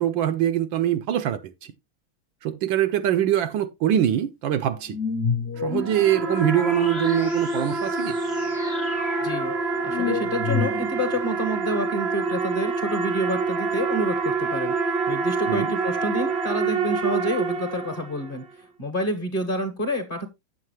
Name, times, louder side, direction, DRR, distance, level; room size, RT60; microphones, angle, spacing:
voice 1, 0.0-1.5 2.4-5.0 5.6-8.2 15.5-15.7, right 11 dB, 75° right, 1.3 m, -23 dB
sound 1, 4.9-11.2, left 5 dB, 45° left, 0.9 m, -31 dB
sound 2, 5.6-18.4, right 4 dB, 50° right, 0.7 m, -27 dB
voice 2, 9.2-9.5 9.8-20.3, equal, 30° left, 1.3 m, -29 dB
8.4 x 7.5 x 3.1 m
omnidirectional pair, 2.3 m